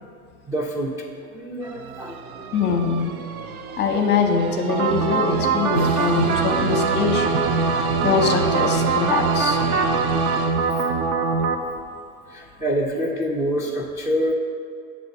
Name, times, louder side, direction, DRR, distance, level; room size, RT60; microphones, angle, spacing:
voice 1, 0.5-1.0 1.3-2.4 12.3-14.3, equal, 5° right, -4 dB, 0.4 m, -26 dB
sound 1, 1.6-11.1, right 7 dB, 90° right, 0.5 m, -31 dB
voice 2, 2.5-3.1 3.8-10.0, left 5 dB, 25° left, 4 dB, 0.7 m, -23 dB
sound 2, 4.7-11.5, right 4 dB, 45° right, 0.6 m, -22 dB
8.0 x 3.2 x 5.3 m, 2.4 s
hypercardioid pair, 95°, 42 cm